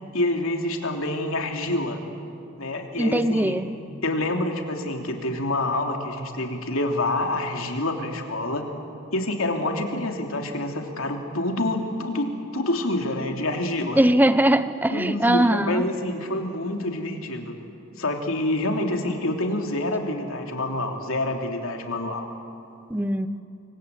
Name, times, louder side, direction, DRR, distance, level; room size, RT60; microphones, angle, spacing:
voice 1, 0.1-2.0 2.6-3.6 4.0-8.6 9.1-12.3 12.5-14.0 14.9-17.6 18.0-22.3, left 1 dB, 80° left, 3 dB, 3.1 m, -27 dB
voice 2, 3.0-3.7 14.0-15.8 22.9-23.3, right 1 dB, 10° right, 12 dB, 0.8 m, -20 dB
28.5 x 24.0 x 8.4 m, 2.6 s
head